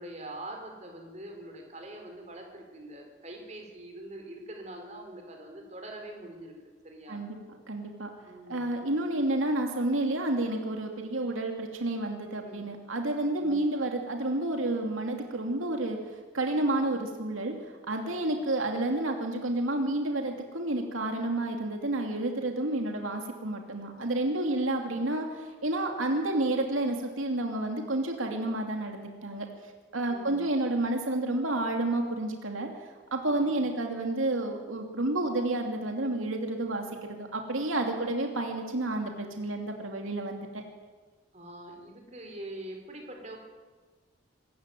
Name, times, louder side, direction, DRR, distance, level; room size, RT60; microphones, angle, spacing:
voice 1, 0.0-7.2 8.3-8.7 12.4-12.7 13.4-13.6 16.8-17.0 18.1-18.4 30.1-30.5 33.3-33.6 38.0-38.1 41.3-43.4, right 1 dB, 35° right, 2 dB, 5.0 m, -44 dB
voice 2, 7.7-8.1 8.5-16.0 16.3-17.6 17.9-29.5 29.9-32.7 33.1-40.6, right 2 dB, 90° right, 3 dB, 2.7 m, -30 dB
25.5 x 14.5 x 9.3 m, 1.4 s
head